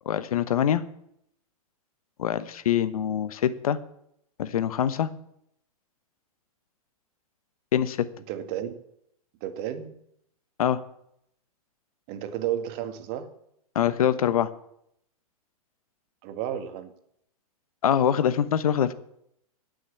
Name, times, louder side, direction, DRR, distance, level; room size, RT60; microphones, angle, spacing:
voice 1, 0.0-0.8 2.2-3.8 4.4-5.1 7.7-8.1 10.6-10.8 13.7-14.5 17.8-18.9, left 9 dB, 70° left, 14 dB, 1.1 m, -24 dB
voice 2, 8.3-8.8 9.4-9.9 12.1-13.3 16.2-16.9, right 10 dB, 45° right, 9 dB, 1.8 m, -32 dB
16.5 x 6.4 x 8.4 m, 0.75 s
hypercardioid pair, 115°, 19 cm